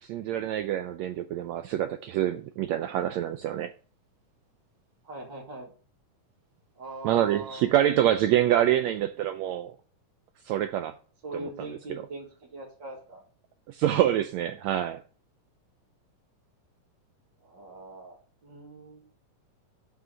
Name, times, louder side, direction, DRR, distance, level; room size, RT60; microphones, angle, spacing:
voice 1, 0.0-3.7 7.0-9.7 10.4-10.9 13.7-15.0, right 11 dB, 90° right, 1.6 m, -26 dB
voice 2, 5.0-5.7 6.7-7.7 11.2-13.2 17.4-19.1, right 2 dB, 40° right, 2.3 m, -41 dB
7.7 x 5.6 x 7.5 m
omnidirectional pair, 3.7 m